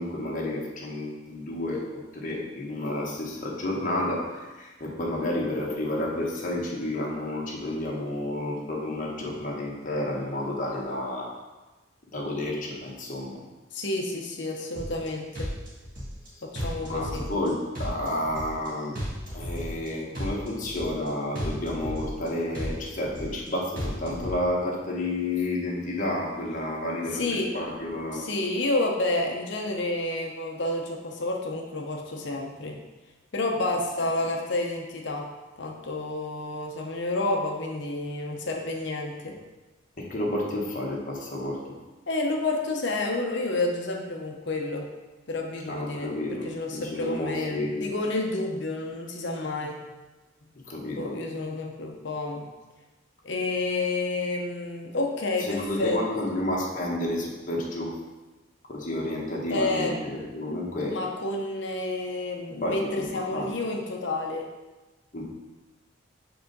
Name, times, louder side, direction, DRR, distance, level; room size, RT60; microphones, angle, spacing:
voice 1, 0.0-11.3 12.1-13.4 16.8-19.0 19.3-28.3 40.0-41.7 45.7-47.9 50.7-51.1 55.4-58.0 58.7-61.0 62.5-63.5 65.1-65.2, left 1 dB, 40° left, -3 dB, 1.2 m, -31 dB
voice 2, 13.7-15.5 16.4-17.3 20.1-20.7 27.1-27.5 28.1-32.8 33.3-35.3 35.6-39.4 42.1-44.9 45.3-46.1 46.4-49.8 50.6-52.4 53.2-56.0 56.3-56.4 59.5-60.0 60.9-64.5, left 2 dB, 60° left, 1 dB, 0.7 m, -30 dB
sound 1, 14.8-15.1 15.3-16.3 16.6-17.5 17.7-18.7 19.0-19.9 20.1-21.1 21.4-22.3 22.5-23.5 23.8-24.4, equal, 45° right, 1.5 m, -34 dB
4.8 x 3.8 x 5.3 m, 1.2 s
head